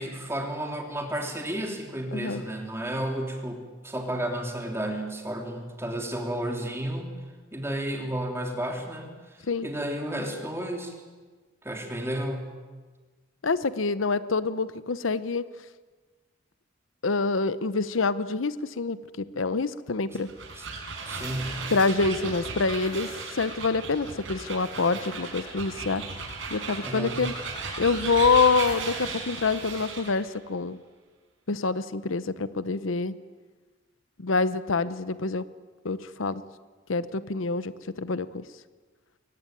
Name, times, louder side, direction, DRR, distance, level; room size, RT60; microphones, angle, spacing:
voice 1, 0.0-7.2 7.5-10.9 11.6-12.5 20.5-20.7 21.1-21.6 26.8-27.3, right 1 dB, 15° right, 2 dB, 3.2 m, -32 dB
voice 2, 2.1-2.4 9.5-9.7 13.4-15.5 17.0-20.3 21.7-26.0 26.5-27.3 27.8-30.8 31.5-33.1 34.2-35.5 35.8-36.4 36.9-37.7 38.0-38.4, left 4 dB, 85° left, 15 dB, 0.8 m, -26 dB
sound 1, 20.1-30.2, right 4 dB, 75° right, 5.6 m, -36 dB
sound 2, 21.3-28.2, left 1 dB, 15° left, 3.2 m, -52 dB
22.5 x 18.5 x 9.1 m, 1.4 s
head